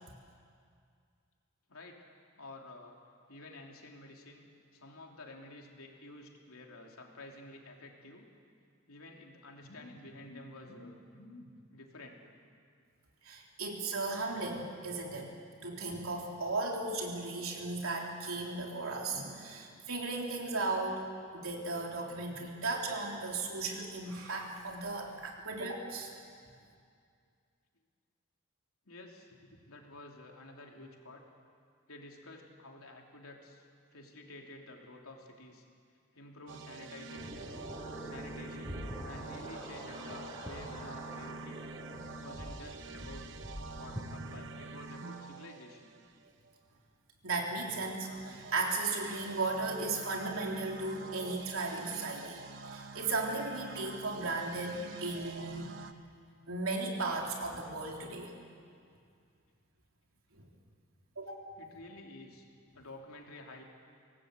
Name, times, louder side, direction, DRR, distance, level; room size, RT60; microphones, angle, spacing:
voice 1, 2.4-3.0 3.3-8.3 8.9-12.3 28.8-31.2 31.9-35.6 36.1-37.6 38.0-38.8 39.0-41.6 42.2-43.3 43.7-46.0 61.6-62.5 62.7-63.6, left 2 dB, 80° left, 1 dB, 3.1 m, -51 dB
voice 2, 13.2-15.3 15.6-21.1 21.3-26.1 47.2-52.4 52.7-55.7 56.5-58.3 60.3-60.4 61.2-61.3, right 3 dB, 75° right, 0 dB, 3.6 m, -36 dB
sound 1, 36.5-46.5 47.9-55.9, right 3 dB, 55° right, 1.1 m, -47 dB
sound 2, 37.1-44.7, equal, 20° right, 6.1 m, -45 dB
24.0 x 18.5 x 8.1 m, 2.3 s
head